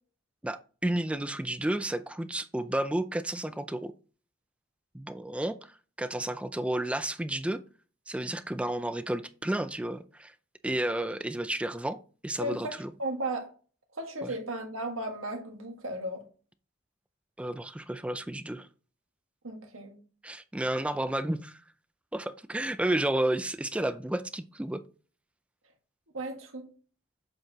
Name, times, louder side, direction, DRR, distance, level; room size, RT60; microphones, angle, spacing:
voice 1, 0.4-3.9 4.9-5.7 6.0-7.6 8.1-10.3 10.6-12.9 14.2-14.3 17.4-18.7 20.2-21.6 22.1-24.8, right 1 dB, 5° right, 0.3 m, -31 dB
voice 2, 12.4-13.5 13.9-16.2 19.4-20.0 26.1-26.7, right 1 dB, 70° right, 1.6 m, -35 dB
7.7 x 4.5 x 2.9 m
head